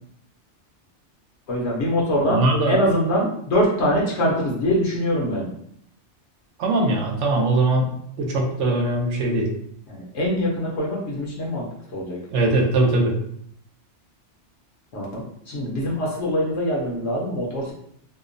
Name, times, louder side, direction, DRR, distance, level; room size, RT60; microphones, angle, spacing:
voice 1, 1.5-5.5 9.9-11.6 11.9-12.2 14.9-17.7, equal, 70° left, -3 dB, 0.9 m, -23 dB
voice 2, 2.2-2.8 6.6-9.5 12.3-13.1, right 2 dB, 80° right, 1 dB, 0.9 m, -21 dB
2.8 x 2.0 x 2.5 m, 0.68 s
omnidirectional pair, 1.2 m